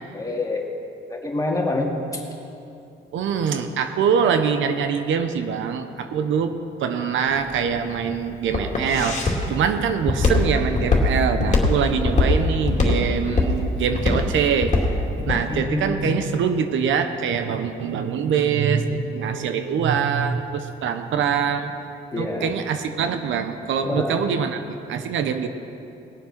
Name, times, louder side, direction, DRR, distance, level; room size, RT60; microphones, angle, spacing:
voice 1, 0.1-0.6 1.1-1.9 15.5-16.2 22.1-22.5 23.8-24.2, left 2 dB, 15° left, 0 dB, 2.2 m, -26 dB
voice 2, 3.1-6.5 6.8-14.9 15.3-21.7 22.2-24.6 24.9-25.5, right 7 dB, 75° right, 8 dB, 0.9 m, -24 dB
Walk footsteps, 7.3-15.5, left 3 dB, 35° left, 2.5 m, -21 dB
19.5 x 7.5 x 5.9 m, 2.8 s
cardioid pair, 90°, 20 cm